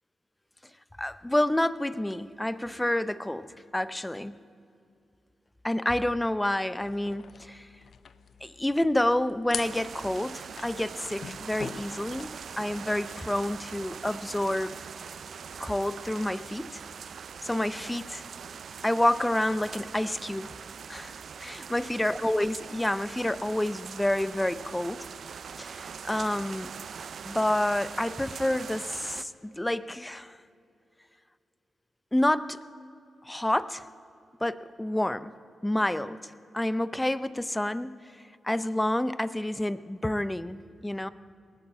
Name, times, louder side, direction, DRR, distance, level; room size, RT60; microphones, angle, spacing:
voice 1, 1.0-4.3 5.6-7.7 8.4-14.8 15.6-16.8 17.4-18.2 18.8-20.6 20.9-21.1 21.4-25.1 25.6-26.7 27.2-30.4 32.1-32.6 33.2-33.8 34.4-35.3 35.6-37.9 38.4-41.1, left 1 dB, 10° left, 15 dB, 0.6 m, -29 dB
sound 1, 6.8-12.4, left 6 dB, 65° left, 0.5 m, -43 dB
sound 2, 9.6-29.2, right 6 dB, 70° right, 0.4 m, -42 dB
19.5 x 8.9 x 8.4 m, 2.4 s
cardioid pair, 60°, 0 cm